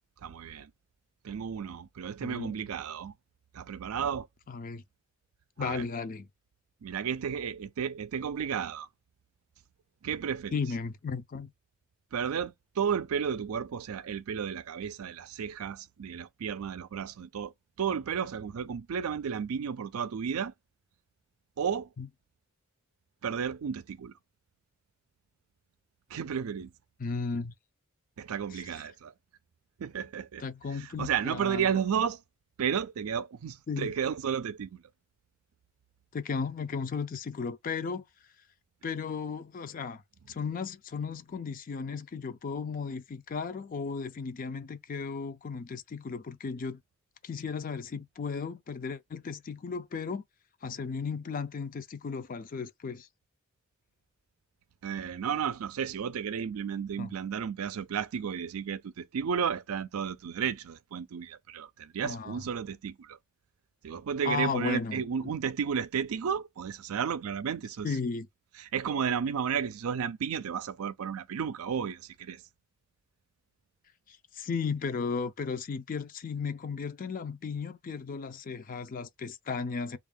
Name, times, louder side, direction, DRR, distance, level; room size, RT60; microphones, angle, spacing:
voice 1, 0.2-0.7 1.2-3.1 3.5-4.3 5.6-5.8 6.8-8.9 10.0-10.6 12.1-20.5 21.6-21.9 23.2-24.1 26.1-26.7 28.2-29.1 29.8-30.4 30.7-32.2 32.6-34.8 54.8-63.2 63.8-67.9 68.6-72.4, right 7 dB, 80° right, 0.4 m, -33 dB
voice 2, 2.2-2.6 4.5-4.8 5.6-6.3 10.5-11.5 22.0-22.1 27.0-27.5 28.5-28.6 30.4-31.7 33.7-33.9 36.1-38.1 38.8-40.0 40.3-46.8 47.2-50.2 50.6-53.1 57.0-57.1 62.0-62.4 64.2-65.3 67.8-68.3 74.1-80.0, left 5 dB, 40° left, 0.4 m, -35 dB
3.5 x 2.4 x 3.6 m
head